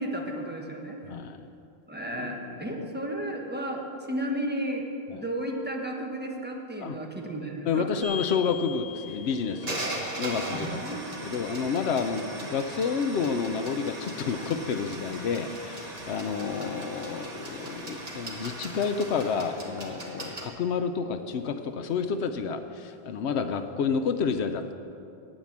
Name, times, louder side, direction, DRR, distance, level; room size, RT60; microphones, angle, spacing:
voice 1, 0.0-1.0 1.9-7.9 10.5-11.0, right 1 dB, 10° right, 0 dB, 1.2 m, -33 dB
voice 2, 1.1-1.4 2.1-2.8 5.1-5.2 6.8-7.0 7.7-9.9 10.2-24.7, left 6 dB, 90° left, 8 dB, 0.9 m, -30 dB
sound 1, 8.0-20.5, right 1 dB, 35° right, 1.5 m, -38 dB
9.2 x 8.9 x 7.3 m, 2.6 s
omnidirectional pair, 1.1 m